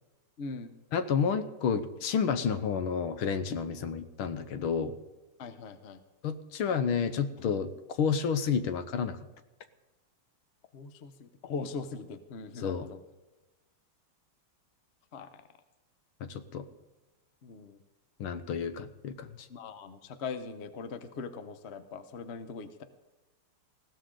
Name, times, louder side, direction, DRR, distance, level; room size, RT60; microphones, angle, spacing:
voice 1, 0.4-0.7 5.4-6.0 10.7-13.0 15.1-15.4 17.4-17.8 19.5-22.8, left 4 dB, 45° left, 10 dB, 0.8 m, -41 dB
voice 2, 0.9-4.9 6.2-7.7 8.0-9.2 12.6-12.9 16.2-16.7 18.2-19.3, left 6 dB, 80° left, 10 dB, 1.8 m, -30 dB
20.0 x 16.0 x 3.8 m, 1.1 s
omnidirectional pair, 2.4 m